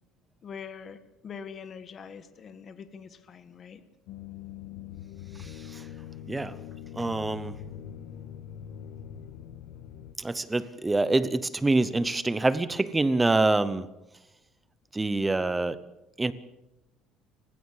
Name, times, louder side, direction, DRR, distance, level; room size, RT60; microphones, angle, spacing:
voice 1, 0.4-3.8, left 6 dB, 25° left, 11 dB, 1.5 m, -43 dB
sound 1, 4.1-10.1, left 10 dB, 60° left, 1.4 m, -43 dB
voice 2, 5.3-5.9 6.3-6.6 6.9-7.6 10.2-13.9 14.9-15.8 16.2-16.3, right 2 dB, 10° right, 14 dB, 0.8 m, -26 dB
28.5 x 16.0 x 7.3 m, 0.95 s
cardioid pair, 180°, 0 cm